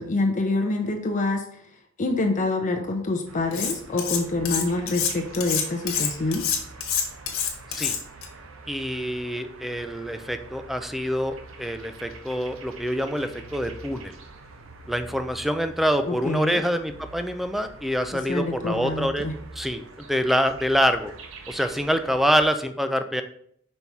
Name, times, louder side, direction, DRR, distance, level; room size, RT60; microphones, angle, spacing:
voice 1, 0.0-1.4 2.0-6.4 16.1-16.6 18.1-19.3, left 2 dB, 40° left, 3 dB, 0.7 m, -26 dB
sound 1, 3.3-22.5, right 3 dB, 75° right, 0.8 m, -45 dB
Cutlery silverware, 3.5-4.2 4.4-8.3, left 8 dB, 85° left, 1.3 m, -26 dB
voice 2, 8.7-14.2 14.9-19.3 19.6-21.1 21.5-23.2, equal, ahead, 8 dB, 0.4 m, -26 dB
5.4 x 4.3 x 4.6 m, 0.66 s
head